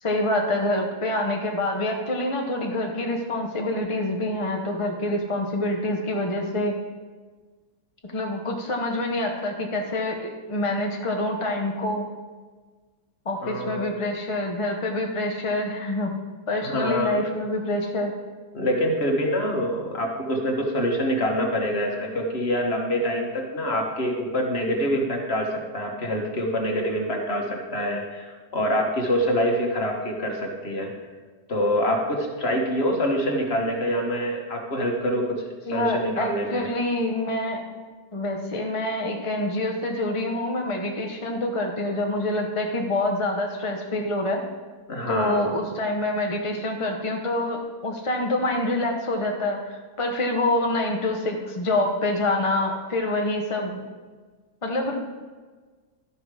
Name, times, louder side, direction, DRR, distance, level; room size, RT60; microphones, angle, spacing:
voice 1, 0.0-6.8 8.1-12.1 13.2-16.1 16.5-18.1 35.7-37.6 38.1-44.4 45.1-53.8 54.6-54.9, left 1 dB, 25° left, 1 dB, 0.8 m, -26 dB
voice 2, 13.4-13.9 16.6-17.3 18.5-30.9 31.5-36.7 44.9-45.5, equal, 45° left, 1 dB, 1.6 m, -25 dB
12.5 x 5.8 x 4.8 m, 1.4 s
omnidirectional pair, 1.5 m